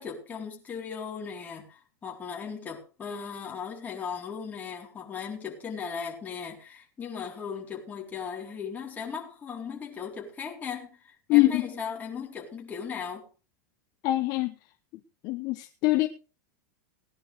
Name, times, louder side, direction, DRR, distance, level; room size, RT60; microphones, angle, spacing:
voice 1, 0.0-13.3, left 6 dB, 20° left, 4.1 m, -37 dB
voice 2, 11.3-11.6 14.0-14.5 15.2-16.1, left 18 dB, 45° left, 1.0 m, -23 dB
19.0 x 11.0 x 3.5 m
supercardioid pair, 145°, 9 cm